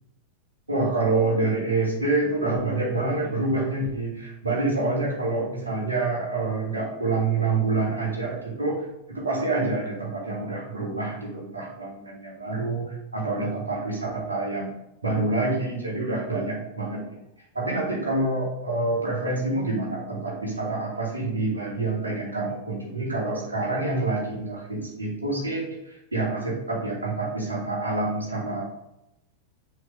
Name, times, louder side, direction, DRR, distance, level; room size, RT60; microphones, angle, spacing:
voice 1, 0.7-14.7 15.0-17.2 17.5-28.7, right 2 dB, 80° right, -4 dB, 2.7 m, -27 dB
7.9 x 6.0 x 3.8 m, 0.85 s
figure-of-eight pair, 90°, 0 cm